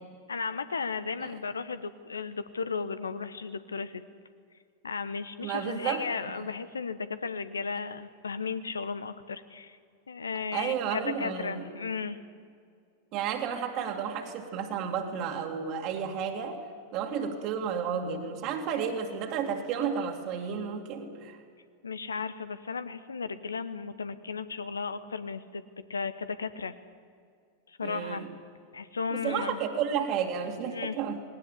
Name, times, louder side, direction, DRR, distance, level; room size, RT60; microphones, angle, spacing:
voice 1, 0.3-4.0 4.8-9.8 10.1-12.2 21.8-25.6 25.9-26.7 27.7-28.3 28.7-29.6 30.7-31.0, left 5 dB, 75° left, 13 dB, 1.0 m, -35 dB
voice 2, 5.4-6.1 10.5-11.6 13.1-16.7 16.9-21.4 27.8-28.3 29.2-31.2, right 7 dB, 40° right, 2 dB, 2.4 m, -32 dB
19.5 x 18.0 x 9.9 m, 2.2 s
figure-of-eight pair, 90°, 0 cm